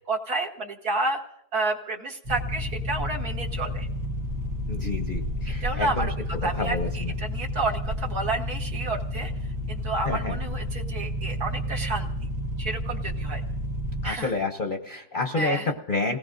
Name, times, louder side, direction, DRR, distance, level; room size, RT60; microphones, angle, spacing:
voice 1, 0.1-1.2 1.5-3.9 5.6-6.1 6.4-9.3 9.7-12.3 12.6-13.4 14.0-14.3 15.3-15.7, right 3 dB, 65° right, 0 dB, 1.8 m, -30 dB
sound 1, 2.3-14.1, left 1 dB, 80° right, 2.2 m, -31 dB
voice 2, 4.7-6.1 6.6-7.1 10.0-10.4 14.0-16.2, left 3 dB, 40° left, 5 dB, 0.8 m, -29 dB
29.0 x 18.5 x 2.6 m, 0.75 s
omnidirectional pair, 1.8 m